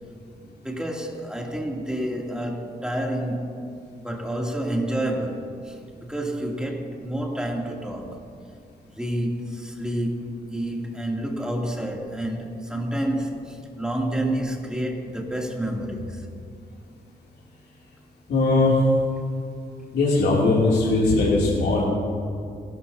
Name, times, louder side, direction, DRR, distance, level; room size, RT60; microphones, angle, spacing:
voice 1, 0.6-3.6 4.0-8.2 8.9-16.3, right 1 dB, 5° right, 3.0 m, -29 dB
voice 2, 18.3-18.8 19.9-21.8, left 2 dB, 85° left, 3.0 m, -20 dB
29.5 x 12.5 x 2.9 m
cardioid pair, 65°, 17 cm